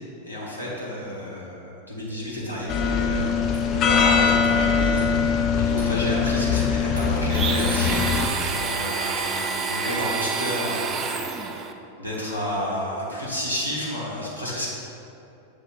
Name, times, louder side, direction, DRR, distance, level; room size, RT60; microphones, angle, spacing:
voice 1, 0.2-3.4 3.7-11.2 12.0-14.7, equal, 90° right, -6 dB, 1.1 m, -31 dB
sound 1, 2.1-2.2 2.7-2.8 3.5-3.7 4.0-4.1 5.0-5.1 5.8-6.0 6.5-7.1 7.6-7.7 8.1-8.3 8.6-8.8 9.2-9.5, right 2 dB, 65° right, 1.1 m, -44 dB
sound 2, 2.7-8.3, left 6 dB, 35° left, 0.4 m, -22 dB
Domestic sounds home sounds, 7.3-11.7, right 5 dB, 25° right, 0.4 m, -28 dB
7.0 x 3.4 x 3.9 m, 2.8 s
figure-of-eight pair, 90°, 0 cm